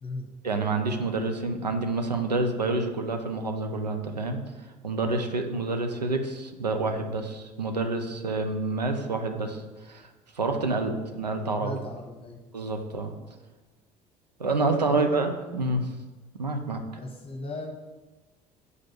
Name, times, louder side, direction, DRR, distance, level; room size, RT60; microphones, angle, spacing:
voice 1, 0.4-4.4 4.8-10.1 10.3-11.8 12.5-13.1 14.4-15.9 16.4-16.8, right 3 dB, 85° right, 5 dB, 0.8 m, -28 dB
voice 2, 11.6-12.4 14.9-15.1 17.0-17.7, left 2 dB, 30° left, 2 dB, 1.1 m, -37 dB
6.5 x 5.3 x 7.1 m, 1.2 s
figure-of-eight pair, 60°, 20 cm